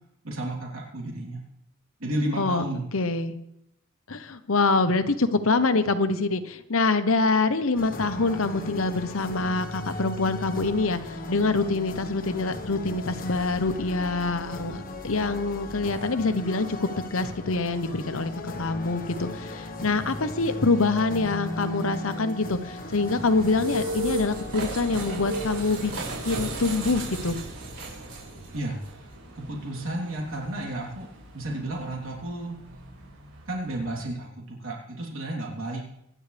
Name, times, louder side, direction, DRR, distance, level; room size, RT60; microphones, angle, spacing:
voice 1, 0.2-1.4 2.0-2.8 28.5-29.0 29.3-31.1 31.3-32.6 33.5-35.8, right 1 dB, 70° right, -2 dB, 3.4 m, -32 dB
voice 2, 2.9-3.4 4.1-25.9 26.2-27.4, left 3 dB, 65° left, 10 dB, 1.0 m, -25 dB
sound 1, 7.7-26.4, left 1 dB, 40° left, 1.4 m, -37 dB
sound 2, 22.6-34.1, right 2 dB, 90° right, 6.5 m, -36 dB
24.5 x 11.0 x 3.4 m, 0.82 s
head